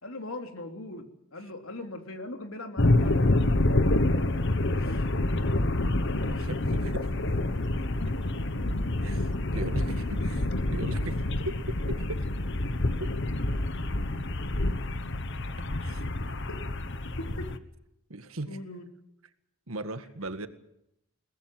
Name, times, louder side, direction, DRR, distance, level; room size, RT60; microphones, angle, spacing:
voice 1, 0.0-3.4 16.5-16.6 17.2-17.5 18.5-18.9, left 2 dB, 85° left, 5 dB, 3.2 m, -40 dB
sound 1, 2.8-17.6, left 2 dB, 60° left, 1.3 m, -27 dB
voice 2, 6.2-7.1 9.0-11.6 11.9-12.3 13.0-13.1 15.8-16.1 18.1-18.6 19.7-20.5, right 2 dB, 80° right, 9 dB, 1.8 m, -38 dB
22.5 x 19.5 x 7.8 m, 0.81 s
head